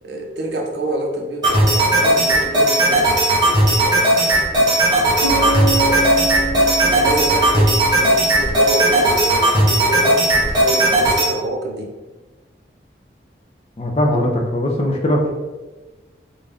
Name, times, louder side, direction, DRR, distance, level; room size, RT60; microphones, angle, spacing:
voice 1, 0.0-4.3 5.3-6.0 6.7-11.9, right 1 dB, 70° right, 1 dB, 0.6 m, -27 dB
sound 1, 1.4-11.3, right 1 dB, 25° right, 0.9 m, -16 dB
Bass guitar, 5.2-9.0, right 2 dB, 75° left, 1.4 m, -26 dB
voice 2, 13.8-15.3, left 1 dB, 35° left, 2 dB, 0.5 m, -19 dB
3.8 x 2.3 x 3.5 m, 1.2 s
head